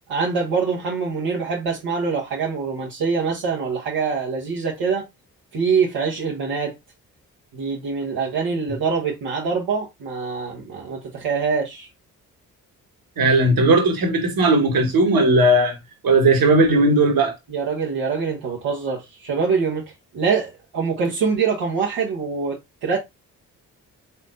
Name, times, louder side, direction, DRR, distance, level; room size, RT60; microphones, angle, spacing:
voice 1, 0.1-5.1 5.5-6.7 7.5-11.9 17.5-23.0, right 5 dB, 75° right, 1.3 m, -24 dB
voice 2, 13.2-15.8 16.0-17.3, right 2 dB, 60° right, 1.7 m, -17 dB
4.3 x 3.7 x 2.6 m
hypercardioid pair, 45°, 39 cm